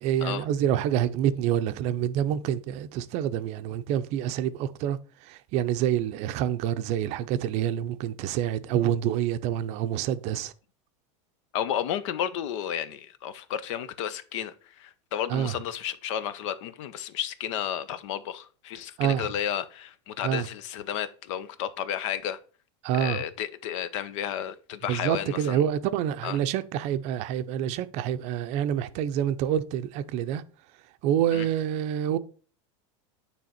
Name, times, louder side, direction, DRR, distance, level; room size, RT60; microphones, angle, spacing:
voice 1, 0.0-5.0 5.3-10.5 15.3-15.5 19.0-19.3 20.2-20.5 22.8-23.2 24.9-30.4 31.0-32.2, right 10 dB, 45° right, 0.5 m, -27 dB
voice 2, 11.5-22.4 22.9-25.6 26.2-26.4 31.3-31.5, left 10 dB, 75° left, 0.7 m, -32 dB
9.2 x 3.4 x 4.2 m
supercardioid pair, 155°, 16 cm